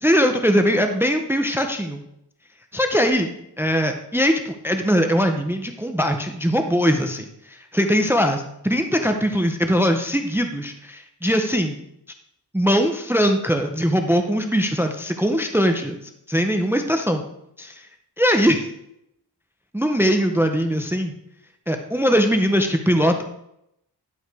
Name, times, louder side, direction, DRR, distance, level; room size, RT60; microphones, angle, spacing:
voice 1, 0.0-2.0 2.7-11.8 12.5-16.0 16.3-17.2 17.6-17.8 18.2-18.7 19.7-21.1 21.7-23.2, equal, 5° right, 6 dB, 0.5 m, -21 dB
11.0 x 4.8 x 4.7 m, 0.76 s
wide cardioid pair, 180°, 41 cm